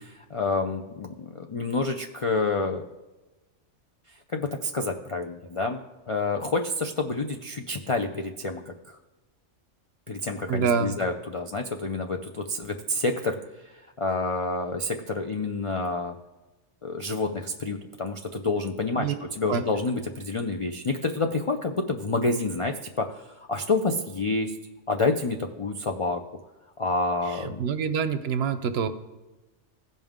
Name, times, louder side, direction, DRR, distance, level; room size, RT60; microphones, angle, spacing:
voice 1, 0.2-2.8 4.3-5.8 6.1-9.0 10.1-13.4 13.7-16.1 16.8-24.6 24.9-26.2 26.8-27.6, left 3 dB, 55° left, 4 dB, 0.3 m, -28 dB
voice 2, 10.5-11.0 19.0-19.1 19.5-19.6 27.3-28.9, right 6 dB, 65° right, 11 dB, 0.8 m, -26 dB
16.0 x 5.4 x 3.6 m, 1.1 s
omnidirectional pair, 1.3 m